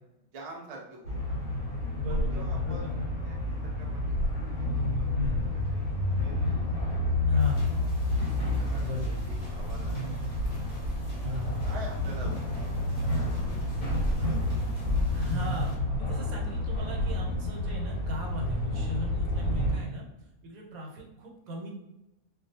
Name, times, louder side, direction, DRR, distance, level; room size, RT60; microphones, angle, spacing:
voice 1, 0.2-1.4 2.1-2.8 3.2-4.5 4.9-6.8 7.3-7.4 7.7-7.9 8.6-10.0 10.4-10.5 11.6-12.7 13.0-14.8, right 2 dB, 65° right, -2 dB, 0.3 m, -47 dB
sound 1, 1.0-19.8, left 1 dB, 85° left, 1.2 m, -29 dB
voice 2, 1.8-3.1 5.1-5.5 7.3-7.7 8.8-9.2 11.2-11.7 15.1-20.1 20.4-21.7, left 1 dB, 85° right, 1 dB, 1.1 m, -37 dB
sound 2, 7.4-15.8, equal, 55° left, 0.8 m, -48 dB
2.4 x 2.2 x 2.7 m, 0.89 s
omnidirectional pair, 1.4 m